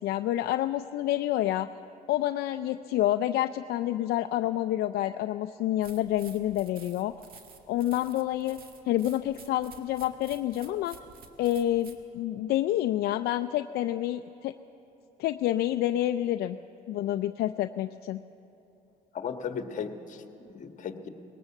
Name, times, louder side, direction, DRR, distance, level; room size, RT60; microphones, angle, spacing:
voice 1, 0.0-1.7 2.1-7.1 7.7-8.6 8.9-11.0 11.4-14.5 15.2-16.6 16.9-18.2, left 13 dB, 70° left, 8 dB, 0.5 m, -28 dB
sound 1, 5.8-12.0, right 5 dB, 60° right, 1.8 m, -52 dB
voice 2, 19.1-21.1, left 6 dB, 45° left, 6 dB, 1.5 m, -36 dB
20.0 x 17.5 x 7.3 m, 3.0 s
cardioid pair, 110°, 17 cm